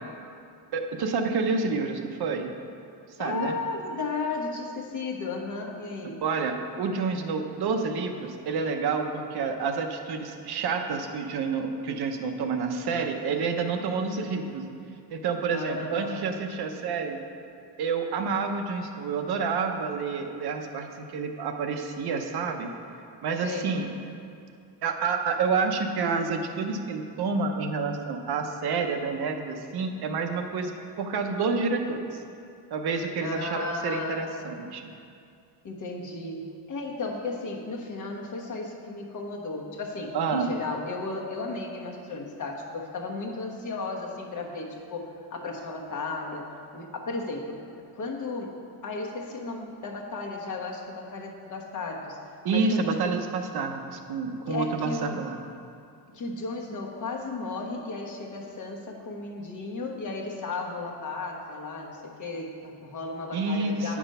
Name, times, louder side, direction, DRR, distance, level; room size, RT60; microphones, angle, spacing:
voice 1, 0.7-2.5 3.2-3.6 6.2-14.7 15.1-17.2 17.8-22.7 23.2-23.9 24.8-32.2 32.7-34.9 40.1-40.5 52.4-55.4 63.3-64.0, right 4 dB, 60° right, 5 dB, 0.8 m, -29 dB
voice 2, 3.2-6.2 15.5-16.3 23.4-23.7 33.2-34.5 35.6-47.6 47.9-52.2 52.5-52.9 54.5-55.3 56.1-64.0, left 3 dB, 45° left, 0 dB, 1.1 m, -34 dB
9.2 x 6.1 x 5.4 m, 2.5 s
cardioid pair, 160°, 43 cm